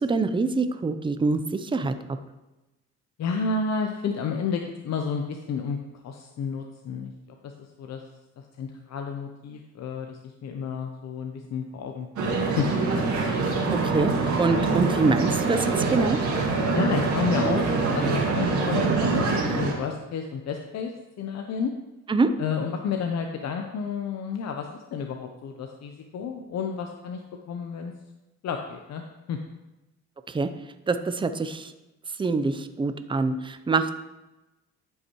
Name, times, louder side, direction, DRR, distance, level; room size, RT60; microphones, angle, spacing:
voice 1, 0.0-1.9 13.8-14.1 14.4-16.2 22.1-22.3 30.3-30.5 30.9-31.7 32.2-33.9, right 3 dB, 15° right, 10 dB, 0.5 m, -25 dB
voice 2, 3.2-5.8 6.0-7.1 7.4-8.0 8.6-12.7 16.7-20.9 21.2-21.7 22.4-27.2 27.5-27.9 28.4-29.0 29.3-29.4, left 5 dB, 60° left, 4 dB, 0.7 m, -31 dB
sound 1, 12.2-19.7, right 4 dB, 70° right, 2.0 m, -25 dB
12.0 x 5.5 x 3.1 m, 1.0 s
cardioid pair, 90°, 30 cm